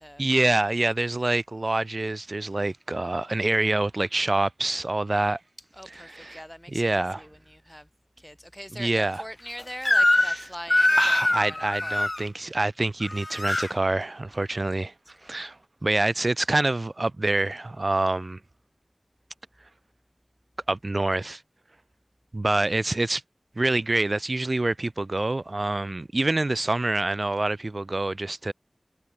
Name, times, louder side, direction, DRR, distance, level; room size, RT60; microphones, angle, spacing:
voice 1, 0.2-5.4 6.1-6.4 6.7-7.2 8.7-9.2 10.2-10.4 11.0-14.9 15.2-18.4 20.7-21.4 22.3-23.2 23.6-28.5, right 2 dB, 55° right, 2.0 m, -26 dB
voice 2, 5.7-7.9 8.2-12.1 14.7-14.9 15.2-15.3, equal, 5° left, 2.8 m, -42 dB
Crying sobbing / Screech, 9.9-10.4 10.7-12.2 13.0-13.7, left 1 dB, 40° left, 0.4 m, -22 dB
wide cardioid pair, 50°, 0 cm